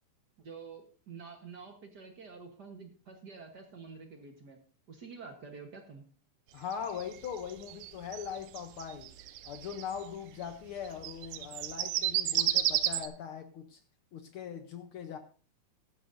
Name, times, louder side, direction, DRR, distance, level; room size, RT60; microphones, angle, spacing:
voice 1, 0.4-4.6 4.9-6.0, right 5 dB, 55° right, 4 dB, 1.2 m, -48 dB
voice 2, 6.5-9.1 9.4-13.8 14.1-15.2, left 7 dB, 85° left, 7 dB, 1.2 m, -40 dB
sound 1, 6.7-10.0 10.9-13.1, right 13 dB, 90° right, 2.3 m, -31 dB
15.0 x 13.0 x 2.6 m, 0.37 s
omnidirectional pair, 3.5 m